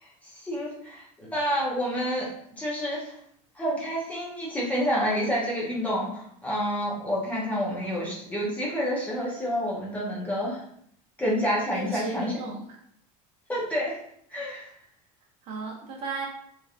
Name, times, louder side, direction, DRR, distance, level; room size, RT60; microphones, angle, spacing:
voice 1, 0.0-2.3 2.6-3.1 3.5-10.6 11.2-12.4 13.5-14.0 14.3-14.7, equal, 10° left, -5 dB, 0.6 m, -29 dB
voice 2, 11.7-12.6 15.5-16.3, right 3 dB, 40° right, 0 dB, 0.5 m, -34 dB
3.1 x 2.4 x 2.4 m, 0.69 s
cardioid pair, 170°, 17 cm